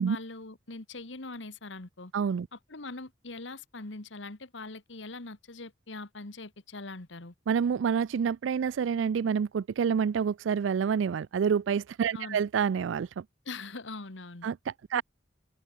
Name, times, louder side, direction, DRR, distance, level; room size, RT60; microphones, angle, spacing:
voice 1, 0.0-2.1 2.5-7.3 12.1-12.4 13.5-14.5 14.9-15.0, left 3 dB, 70° left, 1.8 m, -42 dB
voice 2, 2.1-2.5 7.5-13.2 14.4-15.0, right 7 dB, 75° right, 0.4 m, -28 dB
open air
head